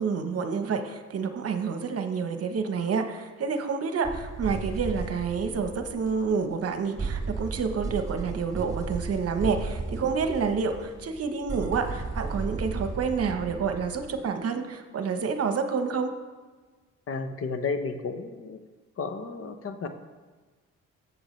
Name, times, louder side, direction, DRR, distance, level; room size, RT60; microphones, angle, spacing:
voice 1, 0.0-16.1, right 5 dB, 50° right, 7 dB, 1.0 m, -28 dB
sound 1, 4.0-6.7 7.0-14.2, right 3 dB, 10° right, 2.6 m, -35 dB
voice 2, 17.1-18.6 19.0-19.9, left 4 dB, 50° left, 8 dB, 1.0 m, -32 dB
14.0 x 8.0 x 3.2 m, 1.4 s
cardioid pair, 90°, 30 cm